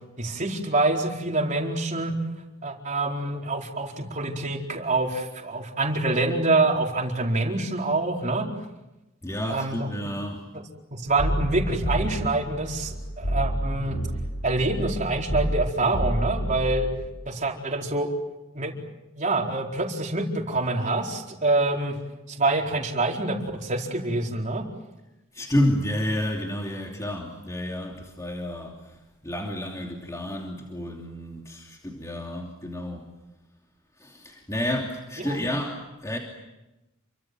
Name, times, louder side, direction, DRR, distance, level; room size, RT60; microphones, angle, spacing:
voice 1, 0.2-2.1 2.6-8.5 9.5-9.9 10.9-14.0 14.4-16.9 17.3-18.1 18.5-18.8 19.2-21.9 22.3-24.6 35.2-35.3, right 2 dB, 35° right, 1 dB, 4.3 m, -26 dB
voice 2, 9.2-10.4 25.3-29.0 29.2-33.1 34.0-36.2, left 1 dB, 15° left, 0 dB, 2.9 m, -30 dB
sound 1, 11.1-17.1, right 1 dB, 90° left, 4.7 m, -29 dB
29.0 x 25.0 x 7.7 m, 1.0 s
head